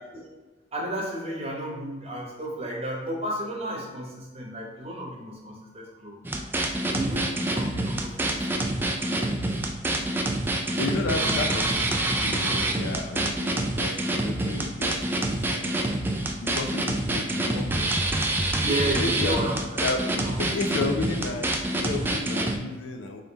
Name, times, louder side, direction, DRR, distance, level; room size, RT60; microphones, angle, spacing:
voice 1, 0.7-6.2 6.8-9.5 9.8-10.1 11.2-11.4 18.6-19.5 20.1-20.4, right 1 dB, 35° right, -1 dB, 0.9 m, -33 dB
sound 1, 6.2-22.6, right 1 dB, 10° right, 0.3 m, -26 dB
voice 2, 10.8-11.9 12.2-15.7 16.3-17.9 18.8-19.5 19.8-23.2, left 3 dB, 75° left, 4 dB, 0.5 m, -32 dB
3.8 x 3.3 x 3.9 m, 1.2 s
head